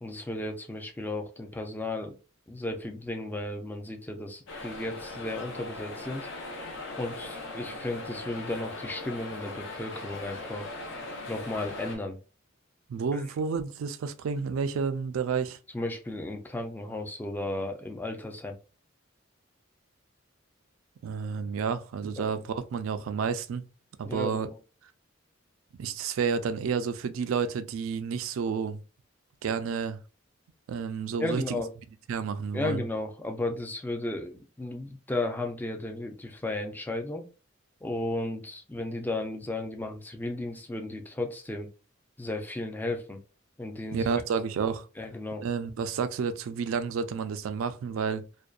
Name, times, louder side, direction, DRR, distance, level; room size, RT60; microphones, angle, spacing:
voice 1, 0.0-2.2 2.5-6.3 7.0-10.7 11.3-12.2 13.1-13.2 15.7-18.6 22.2-22.3 24.0-24.6 31.2-31.7 32.5-37.2 37.8-41.7 42.2-43.2 43.6-44.1 45.0-45.4, left 2 dB, 10° left, 0.3 m, -34 dB
sound 1, 4.5-12.0, left 2 dB, 70° left, 0.7 m, -39 dB
voice 2, 12.9-15.6 21.0-23.6 24.0-24.5 25.8-28.8 29.4-30.0 30.7-31.6 32.1-32.8 43.9-44.9 45.4-48.2, right 6 dB, 85° right, 0.3 m, -30 dB
2.5 x 2.2 x 2.3 m
head